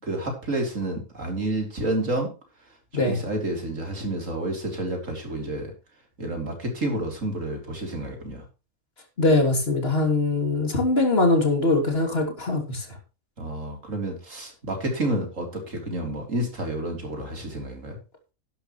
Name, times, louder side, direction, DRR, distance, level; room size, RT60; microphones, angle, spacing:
voice 1, 0.0-2.3 2.9-5.7 6.2-8.4 13.4-18.0, right 1 dB, 60° right, 4.0 m, -29 dB
voice 2, 9.2-12.8, left 2 dB, 40° left, 3.3 m, -22 dB
12.0 x 11.0 x 3.2 m
omnidirectional pair, 1.5 m